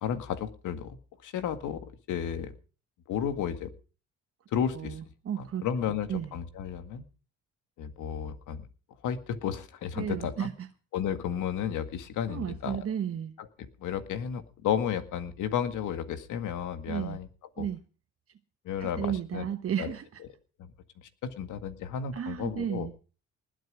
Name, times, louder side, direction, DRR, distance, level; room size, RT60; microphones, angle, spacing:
voice 1, 0.0-2.5 3.1-3.7 4.5-5.0 5.4-7.0 7.8-8.7 9.0-10.5 10.9-12.8 13.4-17.3 17.6-17.7 18.6-19.5 19.8-19.9 20.6-20.7 21.0-22.9, left 8 dB, 80° left, 2.0 m, -33 dB
voice 2, 4.7-5.7 6.1-6.3 10.0-10.7 12.3-13.3 16.9-17.2 17.6-17.8 18.8-20.2 22.1-23.1, right 9 dB, 50° right, 1.1 m, -33 dB
20.0 x 9.3 x 5.0 m
cardioid pair, 90°, 30 cm